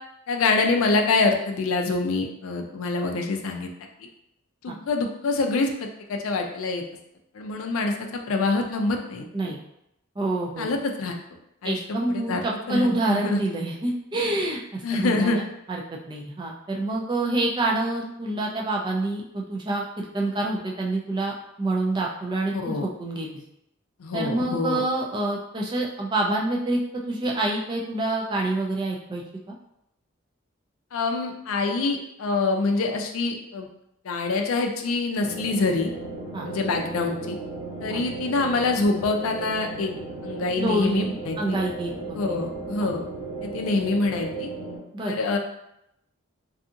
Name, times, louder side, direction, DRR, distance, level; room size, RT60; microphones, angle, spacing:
voice 1, 0.3-3.7 4.6-6.8 7.4-9.5 10.6-11.1 11.6-12.4 12.7-13.4 14.8-15.4 22.5-22.9 24.0-24.8 30.9-33.7 34.1-35.9 36.5-37.4 37.8-39.9 40.2-41.6 42.2-43.0 43.4-44.5 45.0-45.4, left 3 dB, 75° left, 3 dB, 0.4 m, -25 dB
voice 2, 10.2-10.7 11.6-15.4 15.7-23.3 24.1-29.2 29.5-29.6 36.3-36.5 37.9-38.0 40.6-42.5 44.9-45.1, right 2 dB, 20° right, -1 dB, 0.3 m, -27 dB
sound 1, 35.2-44.8, right 3 dB, 10° left, 0.9 m, -35 dB
2.6 x 2.4 x 2.5 m, 0.80 s
head